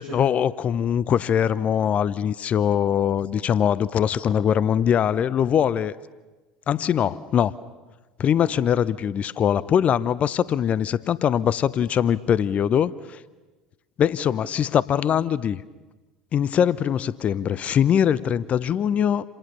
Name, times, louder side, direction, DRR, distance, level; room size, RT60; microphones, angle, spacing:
voice 1, 0.0-5.9 6.7-7.5 8.2-12.9 14.0-15.6 16.3-19.2, left 9 dB, 40° left, 19 dB, 0.8 m, -22 dB
29.0 x 27.5 x 6.9 m, 1.2 s
hypercardioid pair, 70°, 4 cm